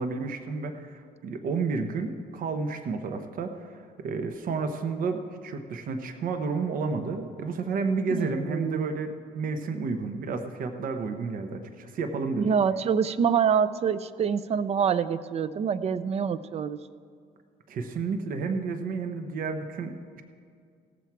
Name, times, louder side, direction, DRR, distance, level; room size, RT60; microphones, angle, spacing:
voice 1, 0.0-12.5 17.7-20.2, right 4 dB, 55° right, 6 dB, 0.9 m, -31 dB
voice 2, 8.1-8.9 12.3-16.8, right 7 dB, 40° right, 15 dB, 0.5 m, -26 dB
17.0 x 7.3 x 4.6 m, 2.2 s
cardioid pair, 110°, 17 cm